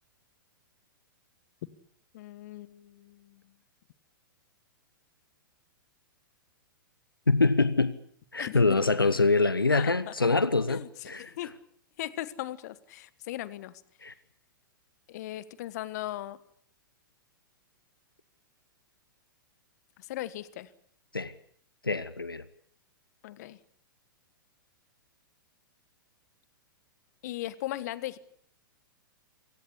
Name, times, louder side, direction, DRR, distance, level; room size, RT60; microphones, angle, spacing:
voice 1, 2.1-3.4 8.4-8.8 9.7-10.1 10.7-11.5 12.0-13.8 15.1-16.4 20.0-20.7 23.2-23.6 27.2-28.2, left 14 dB, 50° left, 1.4 m, -38 dB
voice 2, 7.3-8.0 8.3-11.3 14.0-14.1 21.1-21.3 21.8-22.4, left 3 dB, 85° left, 1.2 m, -25 dB
27.5 x 17.0 x 8.5 m
figure-of-eight pair, 105°, 11 cm